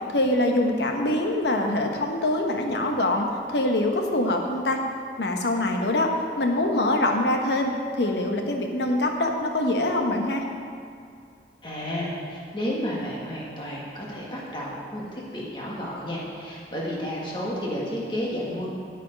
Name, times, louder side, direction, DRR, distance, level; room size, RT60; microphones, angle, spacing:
voice 1, 0.1-4.8 5.2-10.4, left 1 dB, 80° left, 3 dB, 1.1 m, -24 dB
voice 2, 11.6-18.7, equal, 25° left, -4 dB, 1.9 m, -31 dB
8.8 x 8.4 x 5.2 m, 2.4 s
head